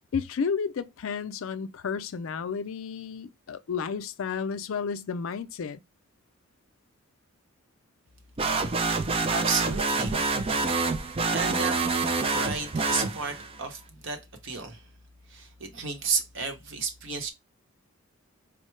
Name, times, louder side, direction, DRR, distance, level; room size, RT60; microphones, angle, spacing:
voice 1, 0.1-5.8, left 6 dB, 65° left, 0.4 m, -32 dB
sound 1, 8.4-13.6, right 3 dB, 25° right, 0.3 m, -27 dB
voice 2, 9.3-10.2 11.3-11.8 12.3-14.9 15.3-17.3, right 5 dB, 60° right, 0.9 m, -32 dB
4.5 x 2.1 x 3.1 m
head